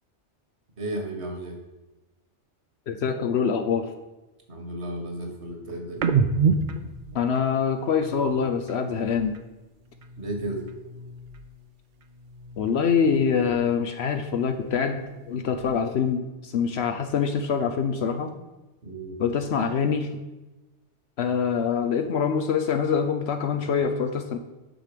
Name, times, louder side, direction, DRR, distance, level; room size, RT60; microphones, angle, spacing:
voice 1, 0.8-1.6 4.5-6.1 10.2-10.6 18.8-19.2, right 1 dB, 70° right, 3 dB, 1.8 m, -33 dB
voice 2, 2.9-3.9 7.1-9.4 12.6-18.3 19.2-20.1 21.2-24.4, left 6 dB, 70° left, 6 dB, 0.9 m, -25 dB
sound 1, 6.0-9.5 9.9-11.7 12.0-13.8 14.2-16.0, right 5 dB, 55° right, 0.7 m, -31 dB
9.0 x 6.0 x 5.0 m, 1.1 s
omnidirectional pair, 1.2 m